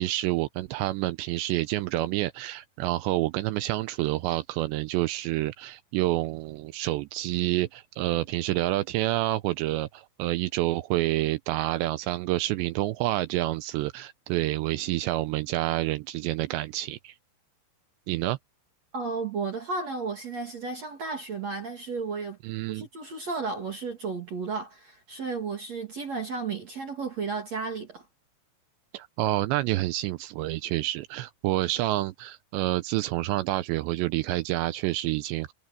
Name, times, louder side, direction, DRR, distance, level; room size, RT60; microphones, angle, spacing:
voice 1, 0.0-17.1 18.1-18.4 22.4-22.9 28.9-35.5, right 17 dB, 85° right, 2.6 m, -28 dB
voice 2, 18.9-22.4 22.7-28.0, right 4 dB, 45° right, 2.9 m, -33 dB
omnidirectional pair, 5.5 m